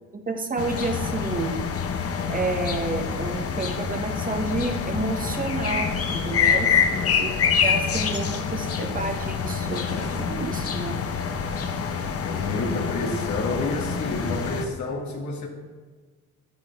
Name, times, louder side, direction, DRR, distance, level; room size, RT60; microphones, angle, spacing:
voice 1, 0.1-1.6 2.3-6.7 7.2-7.3 7.6-11.0, right 3 dB, 30° right, 5 dB, 1.1 m, -30 dB
sound 1, 0.6-14.7, left 6 dB, 50° left, 0.9 m, -26 dB
voice 2, 6.7-7.3 12.2-15.5, left 2 dB, 70° left, 1 dB, 1.8 m, -30 dB
9.9 x 9.7 x 3.5 m, 1.4 s
cardioid pair, 90°, 30 cm